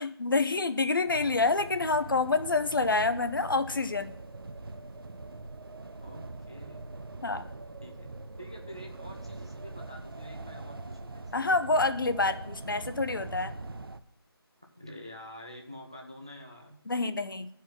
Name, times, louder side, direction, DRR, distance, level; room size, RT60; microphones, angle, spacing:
voice 1, 0.0-4.1 7.2-7.5 11.3-13.5 16.9-17.5, left 3 dB, 55° left, 10 dB, 0.7 m, -27 dB
sound 1, 1.1-14.0, right 2 dB, 60° right, 0.7 m, -42 dB
voice 2, 6.0-6.8 7.8-11.5 14.8-16.8, equal, 15° right, 1 dB, 0.4 m, -47 dB
10.5 x 4.7 x 5.9 m, 0.69 s
figure-of-eight pair, 170°, 13 cm